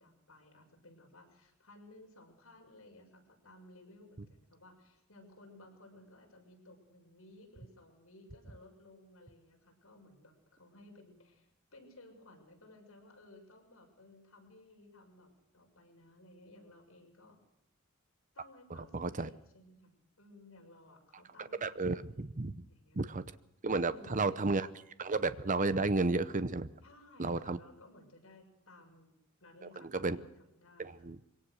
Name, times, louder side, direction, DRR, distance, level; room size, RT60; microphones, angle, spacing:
voice 1, 0.0-17.4 18.3-22.2 22.6-23.1 23.8-24.4 26.8-29.1 29.4-31.1, left 2 dB, 70° left, 1 dB, 6.6 m, -58 dB
voice 2, 18.9-19.3 21.4-22.6 23.0-23.2 23.6-24.7 25.0-26.7 27.2-27.6 29.9-30.2 30.8-31.2, right 3 dB, 40° right, 14 dB, 0.8 m, -32 dB
24.0 x 17.5 x 6.5 m, 0.80 s
head